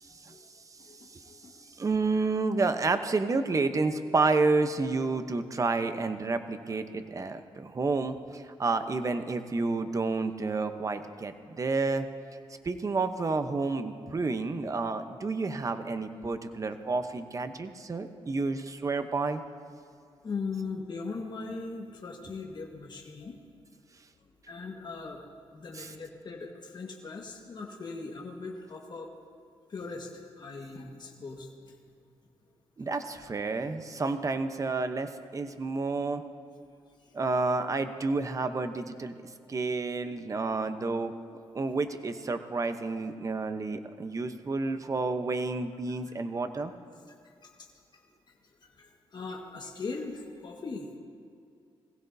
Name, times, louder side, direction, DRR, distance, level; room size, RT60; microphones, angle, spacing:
voice 1, 0.8-1.6 20.2-23.4 24.5-25.2 25.5-29.1 29.7-31.8 37.0-37.2 46.9-48.0 48.3-48.4 48.6-51.0, left 4 dB, 45° left, 0 dB, 1.5 m, -40 dB
voice 2, 1.8-12.1 12.6-19.4 25.8-25.9 32.8-36.2 37.1-39.1 39.5-41.1 41.5-46.7, right 3 dB, 35° right, 9 dB, 0.8 m, -30 dB
20.5 x 16.0 x 2.7 m, 2.4 s
cardioid pair, 95°, 10 cm